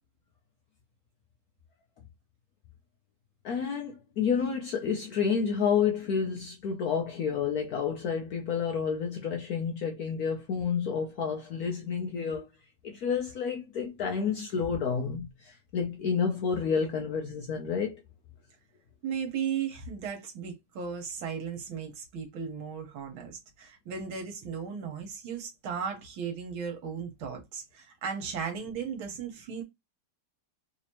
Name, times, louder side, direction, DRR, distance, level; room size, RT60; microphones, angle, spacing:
voice 1, 3.4-12.5 12.8-18.0, left 6 dB, 65° left, 1.0 m, -30 dB
voice 2, 19.0-29.6, right 7 dB, 80° right, 2.0 m, -36 dB
4.0 x 2.8 x 3.0 m
omnidirectional pair, 2.2 m